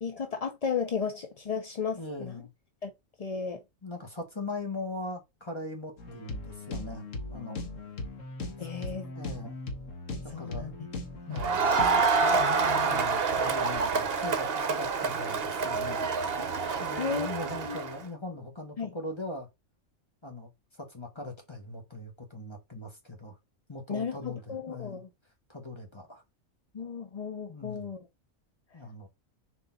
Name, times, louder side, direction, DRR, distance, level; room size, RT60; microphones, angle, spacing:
voice 1, 0.0-2.3 2.8-2.9 3.2-3.6 8.6-9.1 10.3-10.7 11.3-11.4 12.2-13.1 17.0-17.3 17.7-17.8 18.8-18.9 23.9-25.1 26.7-28.0, left 6 dB, 40° left, 0.6 m, -34 dB
voice 2, 1.9-2.5 3.8-7.6 8.6-8.7 9.2-9.6 10.2-10.8 11.3-11.6 12.8-16.0 16.8-19.5 20.2-23.4 23.7-25.0 25.5-26.2 27.5-27.9 28.7-29.1, left 2 dB, 20° left, 1.7 m, -40 dB
sound 1, 6.0-12.0, left 2 dB, 65° left, 1.7 m, -38 dB
Crowd, 11.4-17.9, right 4 dB, 50° right, 1.1 m, -27 dB
6.8 x 4.5 x 4.1 m
omnidirectional pair, 1.4 m